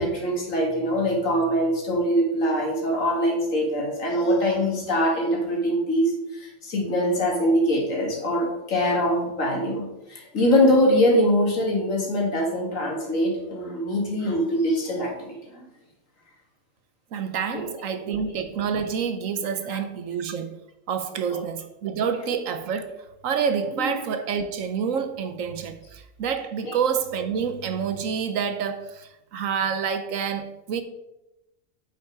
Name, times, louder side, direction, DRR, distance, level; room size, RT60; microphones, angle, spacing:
voice 1, 0.0-15.4 17.5-17.7 21.3-21.4 23.8-23.9 26.6-26.8, equal, 75° left, 2.4 m, -23 dB
voice 2, 17.1-20.6 20.9-30.8, right 7 dB, 75° right, 1.2 m, -28 dB
8.3 x 5.9 x 4.7 m
omnidirectional pair, 1.4 m